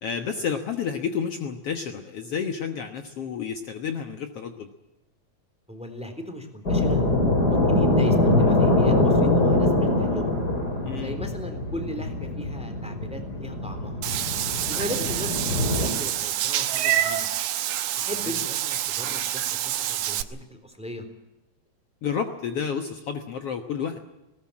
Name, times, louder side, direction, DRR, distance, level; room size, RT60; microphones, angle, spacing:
voice 1, 0.0-4.7 10.8-11.1 22.0-24.0, left 7 dB, 60° left, 6 dB, 2.1 m, -30 dB
voice 2, 5.7-7.0 7.5-10.4 11.0-14.0 14.7-17.3 18.0-21.0, equal, ahead, 7 dB, 3.4 m, -37 dB
sound 1, 6.7-15.9, left 2 dB, 30° left, 4.3 m, -23 dB
Meow / Water / Bathtub (filling or washing), 14.0-20.2, right 12 dB, 85° right, 2.4 m, -27 dB
20.0 x 19.0 x 8.7 m, 0.96 s
omnidirectional pair, 3.3 m